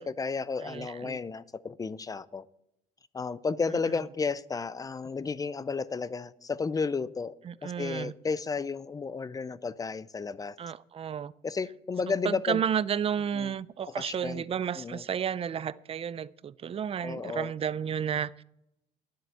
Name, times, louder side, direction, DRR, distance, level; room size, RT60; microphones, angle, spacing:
voice 1, 0.0-2.5 3.1-7.3 7.6-10.6 11.4-12.6 13.3-13.5 14.0-14.4 14.8-15.0 17.0-17.5, left 4 dB, 20° left, 0.5 m, -33 dB
voice 2, 0.6-1.2 7.4-8.1 10.6-11.3 12.2-18.4, right 8 dB, 35° right, 0.5 m, -32 dB
11.0 x 7.6 x 6.9 m
cardioid pair, 110°, 17 cm